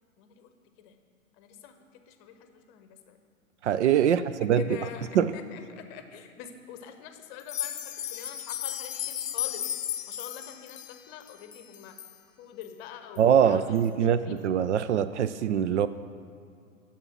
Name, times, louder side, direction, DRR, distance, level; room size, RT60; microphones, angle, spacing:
voice 1, 0.2-0.5 0.8-1.0 1.4-3.2 4.0-4.3 4.5-9.7 10.1-12.0 12.4-14.3, left 8 dB, 30° left, 7 dB, 0.9 m, -45 dB
voice 2, 3.6-4.6 5.2-5.3 13.2-15.9, right 9 dB, 55° right, 13 dB, 0.5 m, -23 dB
sound 1, 7.4-12.1 12.6-12.7 13.2-13.3 13.8-13.9, left 11 dB, 65° left, 0.6 m, -35 dB
11.0 x 7.2 x 6.1 m, 2.3 s
figure-of-eight pair, 110°, 41 cm